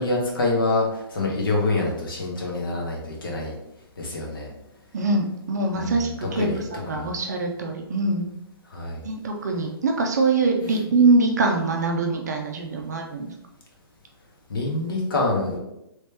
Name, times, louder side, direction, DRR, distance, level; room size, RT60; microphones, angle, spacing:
voice 1, 0.0-3.6 4.0-4.5 5.7-6.1 6.3-7.2 8.7-9.0 14.5-15.6, left 2 dB, 60° left, -2 dB, 1.2 m, -26 dB
voice 2, 4.9-8.3 9.0-13.3, right 3 dB, 45° right, 2 dB, 0.5 m, -23 dB
3.1 x 2.9 x 3.3 m, 0.86 s
hypercardioid pair, 175°, 13 cm